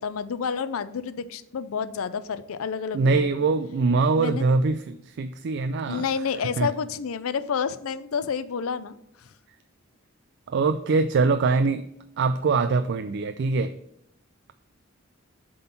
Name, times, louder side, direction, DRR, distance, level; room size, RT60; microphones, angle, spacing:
voice 1, 0.0-3.3 4.2-4.5 5.9-9.0, left 6 dB, 85° left, 14 dB, 0.5 m, -29 dB
voice 2, 2.9-6.1 6.6-6.7 10.5-11.8 12.2-13.7, right 4 dB, 55° right, 10 dB, 0.3 m, -23 dB
7.7 x 3.8 x 5.7 m, 0.77 s
head